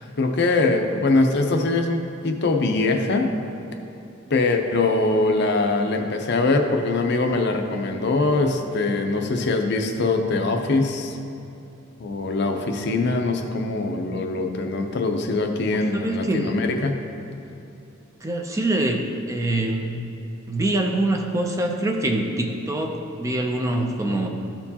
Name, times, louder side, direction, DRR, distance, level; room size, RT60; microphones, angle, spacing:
voice 1, 0.0-3.3 4.3-11.2 12.0-17.0, left 3 dB, 55° left, 4 dB, 0.6 m, -22 dB
voice 2, 15.7-16.6 18.2-20.0 20.5-24.3, right 1 dB, 15° right, 3 dB, 0.4 m, -24 dB
13.0 x 4.4 x 2.8 m, 2.8 s
head